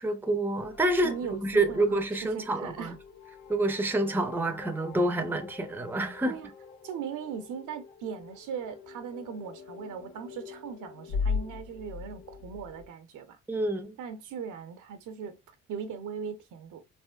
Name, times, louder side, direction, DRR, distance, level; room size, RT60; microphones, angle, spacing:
voice 1, 0.0-2.9 3.5-6.3 13.5-14.0, right 2 dB, 5° right, 0.5 m, -28 dB
sound 1, 0.6-12.9, left 5 dB, 60° left, 1.4 m, -40 dB
voice 2, 1.0-3.0 6.2-6.5 6.8-13.4 14.0-15.4 15.7-16.8, right 7 dB, 85° right, 0.8 m, -39 dB
3.5 x 2.5 x 2.3 m
cardioid pair, 90°, 30 cm